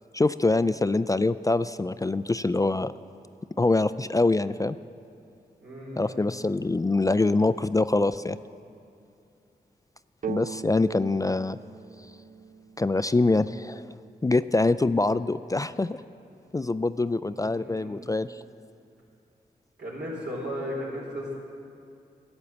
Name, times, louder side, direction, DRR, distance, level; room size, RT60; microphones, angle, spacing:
voice 1, 0.1-2.9 3.6-4.8 6.0-8.4 10.3-11.6 12.8-13.9 14.2-16.0 16.5-18.4, left 2 dB, 20° left, 14 dB, 0.3 m, -24 dB
voice 2, 5.6-6.3 17.2-18.1 19.8-21.3, equal, 80° right, -3 dB, 3.7 m, -36 dB
sound 1, 10.2-13.9, right 7 dB, 50° right, 0.5 m, -40 dB
13.5 x 8.8 x 7.0 m, 2.6 s
cardioid pair, 45°, 17 cm